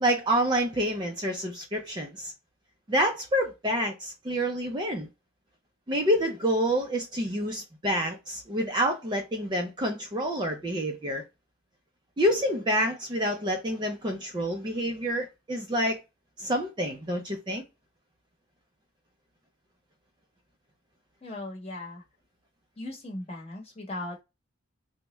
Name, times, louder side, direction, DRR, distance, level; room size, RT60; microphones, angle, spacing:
voice 1, 0.0-2.3 2.9-5.1 5.9-11.2 12.2-16.0 16.4-17.6, equal, 20° right, 0.4 m, -28 dB
voice 2, 21.2-22.0 22.8-24.2, left 2 dB, 30° left, 1.0 m, -38 dB
3.3 x 2.1 x 2.9 m
head